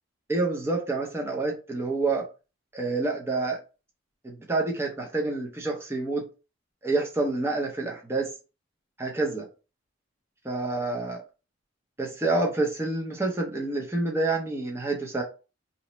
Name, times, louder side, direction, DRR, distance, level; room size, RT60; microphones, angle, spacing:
voice 1, 0.3-2.3 2.7-3.6 4.2-6.3 6.8-8.3 9.0-9.4 10.4-11.2 12.0-15.2, right 2 dB, 10° right, 0.6 m, -28 dB
2.9 x 2.1 x 4.0 m
head